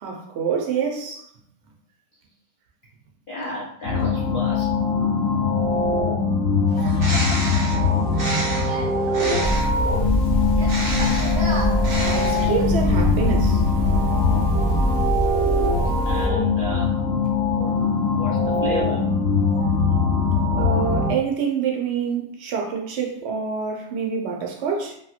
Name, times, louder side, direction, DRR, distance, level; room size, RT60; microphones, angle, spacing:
voice 1, 0.0-1.3 12.0-13.6 20.6-25.0, right 6 dB, 60° right, 0.8 m, -26 dB
voice 2, 3.3-4.7 16.0-17.0 17.5-17.7 18.1-19.2, left 2 dB, 55° left, 0.6 m, -32 dB
sound 1, 3.8-21.1, left 4 dB, 85° left, 1.3 m, -22 dB
Bird, 6.7-9.8 10.6-12.7, right 1 dB, 80° right, 0.4 m, -30 dB
sound 2, 9.4-16.3, equal, 15° right, 1.1 m, -24 dB
2.8 x 2.7 x 2.4 m
omnidirectional pair, 1.6 m